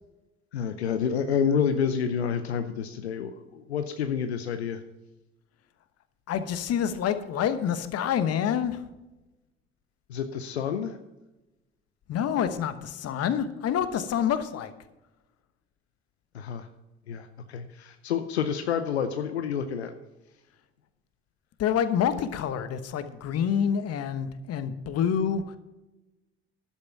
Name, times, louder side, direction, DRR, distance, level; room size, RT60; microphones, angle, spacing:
voice 1, 0.5-4.8 10.1-11.0 16.3-16.7 17.1-19.9, left 7 dB, 85° left, 9 dB, 0.7 m, -29 dB
voice 2, 6.3-8.8 12.1-14.7 21.6-25.6, left 8 dB, 50° left, 11 dB, 1.2 m, -27 dB
11.5 x 8.5 x 5.9 m, 1.0 s
figure-of-eight pair, 55°, 32 cm